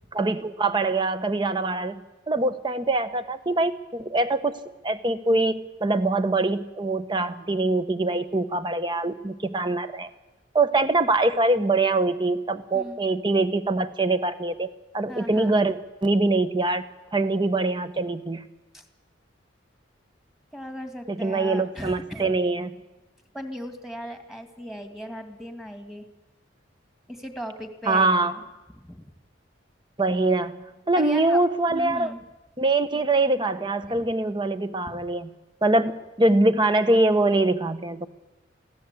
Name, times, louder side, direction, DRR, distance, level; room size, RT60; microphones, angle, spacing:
voice 1, 0.1-4.6 4.8-10.1 10.5-15.8 16.0-16.8 17.1-18.4 21.1-22.7 27.9-28.3 30.0-30.6 30.9-32.1 32.6-35.3 35.6-38.1, right 2 dB, 25° right, 11 dB, 1.1 m, -23 dB
voice 2, 15.1-15.6 18.7-18.8 20.5-22.3 23.3-26.1 27.1-28.4 28.7-29.1 30.9-31.4 31.7-32.2 33.8-34.1 34.9-35.0, equal, ahead, 5 dB, 2.2 m, -37 dB
24.5 x 16.5 x 8.4 m, 1.1 s
head